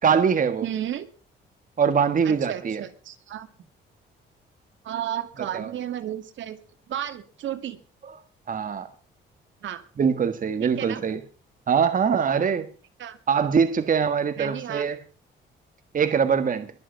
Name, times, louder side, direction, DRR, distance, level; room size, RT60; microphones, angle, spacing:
voice 1, 0.0-0.7 1.8-2.8 5.5-5.7 8.5-8.9 10.0-11.2 11.7-12.7 13.3-15.0 15.9-16.7, right 6 dB, 40° right, 1.6 m, -22 dB
voice 2, 0.6-1.1 2.2-3.5 4.8-6.6 6.9-7.8 9.6-9.8 10.6-11.0 13.0-13.2 14.4-14.8, right 11 dB, 70° right, 2.2 m, -33 dB
22.5 x 7.9 x 5.7 m
cardioid pair, 90°, 20 cm